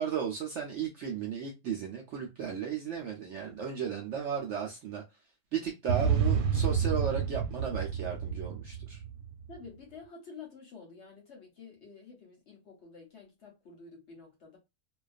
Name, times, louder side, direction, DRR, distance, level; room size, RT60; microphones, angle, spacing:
voice 1, 0.0-5.0 5.5-9.0, right 8 dB, 70° right, 0.7 m, -35 dB
sound 1, 5.9-9.4, right 6 dB, 85° right, 1.1 m, -29 dB
voice 2, 9.5-14.6, left 5 dB, 55° left, 0.9 m, -50 dB
2.3 x 2.3 x 2.3 m
omnidirectional pair, 1.6 m